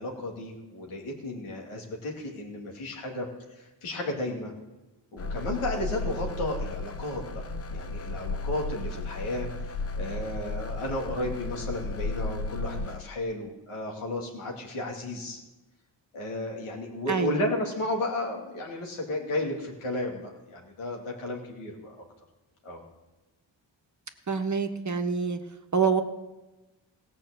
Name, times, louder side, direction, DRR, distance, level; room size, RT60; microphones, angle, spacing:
voice 1, 0.0-4.5 5.1-7.4 7.7-15.4 16.1-22.0 22.6-22.8, left 1 dB, 85° left, -1 dB, 2.6 m, -33 dB
sound 1, 5.2-13.0, left 2 dB, 30° left, 0.7 m, -34 dB
voice 2, 17.1-17.4 24.3-25.4 25.7-26.0, right 5 dB, 35° right, 6 dB, 1.4 m, -26 dB
16.5 x 5.8 x 7.8 m, 1.1 s
supercardioid pair, 50°, 49 cm